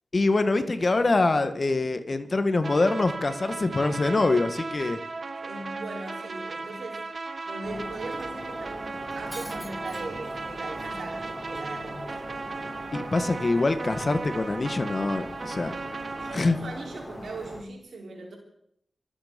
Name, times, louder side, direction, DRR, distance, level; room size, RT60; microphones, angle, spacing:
voice 1, 0.1-5.0 12.9-15.7 16.3-16.6, left 3 dB, 45° left, 10 dB, 1.6 m, -24 dB
sound 1, 2.6-16.4, right 3 dB, 55° right, 1.7 m, -36 dB
voice 2, 5.4-7.0 7.5-12.4 16.2-18.4, right 2 dB, 80° right, -1 dB, 5.4 m, -39 dB
Shatter, 7.6-17.6, equal, 15° left, 6.7 m, -41 dB
25.0 x 9.2 x 5.3 m, 0.71 s
cardioid pair, 45°, 0 cm